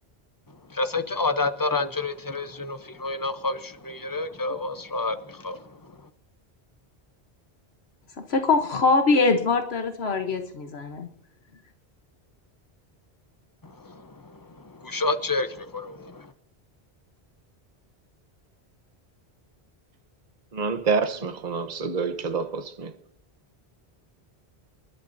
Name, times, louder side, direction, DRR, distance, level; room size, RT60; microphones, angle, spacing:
voice 1, 0.5-6.1 13.6-16.3, left 3 dB, 25° left, 0.6 m, -30 dB
voice 2, 8.3-11.1, left 4 dB, 75° left, 1.2 m, -22 dB
voice 3, 20.5-22.9, right 5 dB, 45° right, 1.0 m, -27 dB
27.5 x 11.5 x 2.6 m
omnidirectional pair, 1.1 m